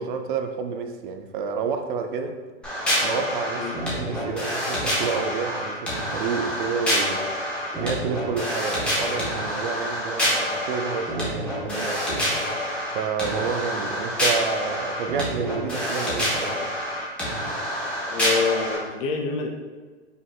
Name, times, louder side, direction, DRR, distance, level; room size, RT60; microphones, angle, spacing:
voice 1, 0.0-2.4 3.0-7.3 7.8-12.3 12.9-16.7, right 6 dB, 45° right, 6 dB, 0.4 m, -30 dB
sound 1, 2.6-18.8, equal, 5° left, 0.9 m, -27 dB
voice 2, 18.1-19.5, left 4 dB, 30° left, 3 dB, 0.4 m, -26 dB
5.3 x 3.7 x 2.3 m, 1.4 s
hypercardioid pair, 145°, 35 cm